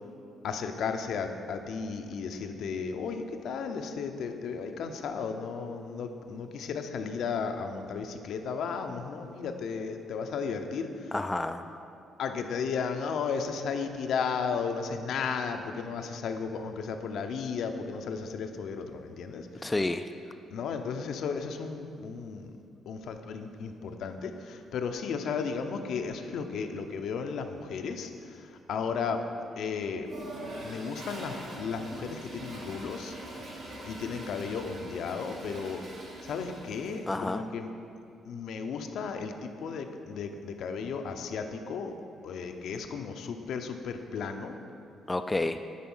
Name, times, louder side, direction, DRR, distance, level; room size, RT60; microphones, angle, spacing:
voice 1, 0.4-11.1 12.2-19.7 20.5-22.6 22.9-29.2 29.6-30.1 30.6-33.2 33.8-35.8 36.2-37.7 38.2-42.0 42.2-44.5, left 5 dB, 75° left, 6 dB, 0.6 m, -34 dB
voice 2, 11.1-11.8 19.6-20.1 37.1-37.5 45.1-45.6, left 2 dB, 15° left, 8 dB, 0.3 m, -30 dB
Toilet flush, 30.0-37.3, right 1 dB, 70° right, 1.9 m, -43 dB
10.5 x 4.3 x 5.5 m, 2.6 s
cardioid pair, 90°, 0 cm